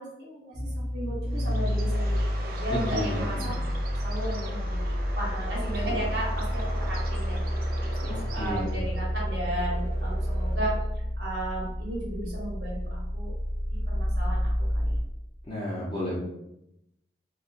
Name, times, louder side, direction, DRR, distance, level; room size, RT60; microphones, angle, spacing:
voice 1, 0.0-3.6 4.0-7.4 7.8-10.7 11.2-13.3 13.7-14.9, right 1 dB, 80° right, -4 dB, 1.0 m, -35 dB
sound 1, 0.5-15.0, equal, 15° right, 1.0 m, -29 dB
Bird, 1.3-9.0, right 2 dB, 55° right, 0.4 m, -42 dB
voice 2, 2.7-3.6 5.9-6.0 8.0-8.7 15.5-16.2, left 1 dB, 30° left, -6 dB, 0.5 m, -33 dB
sound 2, 5.1-10.8, right 1 dB, 85° left, 0.7 m, -45 dB
2.6 x 2.3 x 2.4 m, 0.85 s
head